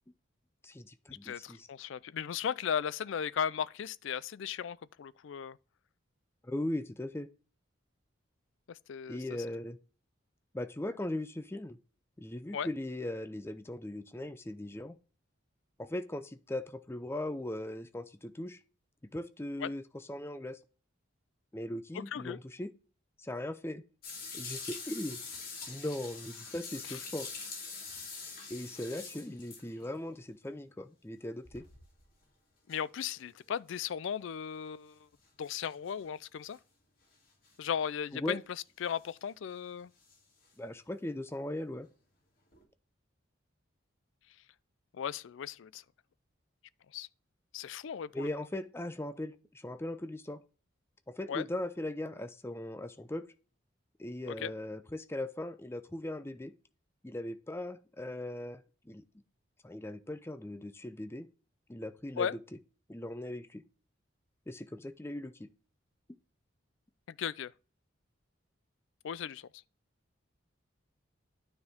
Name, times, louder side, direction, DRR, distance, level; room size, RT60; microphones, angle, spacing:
voice 1, 0.6-1.7 6.4-7.3 9.1-9.8 10.5-11.8 12.2-15.0 15.8-18.6 19.1-20.6 21.5-22.7 23.2-23.8 24.3-25.2 25.7-27.3 28.5-31.6 38.1-38.4 40.6-41.9 48.1-50.4 51.1-53.3 54.0-56.5 57.0-59.0 59.6-61.3 61.7-62.3 62.9-63.6 64.5-65.5, left 1 dB, 10° left, 0.5 m, -39 dB
voice 2, 1.2-5.6 8.7-9.2 12.5-12.7 19.6-19.7 21.9-22.4 26.9-27.0 32.7-35.1 35.4-36.6 37.6-38.4 38.8-39.9 44.9-45.8 46.9-47.1 47.5-48.3 51.3-51.5 54.3-54.5 62.2-62.4 67.1-67.5 69.0-69.5, left 8 dB, 70° left, 0.4 m, -36 dB
sound 1, 24.0-30.0 31.4-32.1 32.7-32.8 34.0-34.1 35.4-36.0 36.5-36.6 37.4-37.5 38.8-39.1 40.0-40.2 42.5-42.6, left 4 dB, 45° left, 2.7 m, -44 dB
9.5 x 4.4 x 3.6 m
head